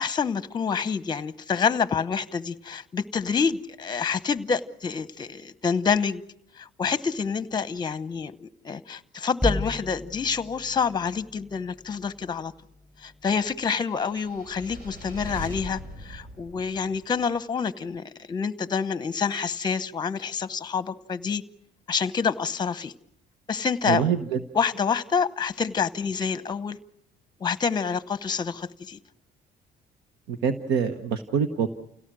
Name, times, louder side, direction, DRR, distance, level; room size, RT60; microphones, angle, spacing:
voice 1, 0.0-6.2 6.6-12.5 13.0-21.4 21.9-22.9 23.5-24.1 24.5-26.8 27.4-29.0, left 6 dB, 25° left, 14 dB, 0.9 m, -27 dB
sound 1, 9.4-13.7, left 1 dB, ahead, 6.0 m, -35 dB
sound 2, 13.8-17.2, right 1 dB, 60° right, 5.5 m, -40 dB
voice 2, 23.9-24.4 30.3-31.7, right 7 dB, 90° right, 9 dB, 1.2 m, -25 dB
29.5 x 17.5 x 6.2 m, 0.72 s
cardioid pair, 110°, 17 cm